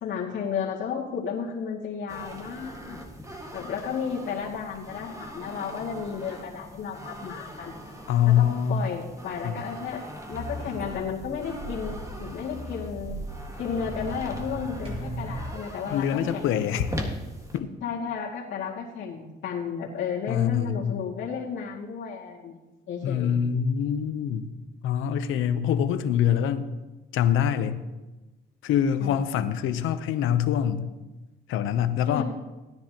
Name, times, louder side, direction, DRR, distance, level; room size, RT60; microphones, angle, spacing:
voice 1, 0.0-3.0 3.5-7.8 8.3-10.0 10.3-13.2 13.6-16.6 17.8-22.6 22.9-23.3 29.0-29.2 32.0-32.2, left 6 dB, 70° left, -8 dB, 2.3 m, -33 dB
sound 1, 2.1-17.6, equal, 15° right, 1.7 m, -41 dB
voice 2, 8.1-8.8 9.4-9.5 15.9-16.9 17.5-17.7 20.3-21.0 23.0-24.5 24.8-26.7 27.1-27.8 28.6-30.8 31.5-32.2, left 9 dB, 90° left, 11 dB, 0.8 m, -24 dB
sound 2, 10.3-15.4, right 1 dB, 30° right, 4.1 m, -37 dB
17.0 x 10.5 x 2.9 m, 1.1 s
cardioid pair, 90°, 20 cm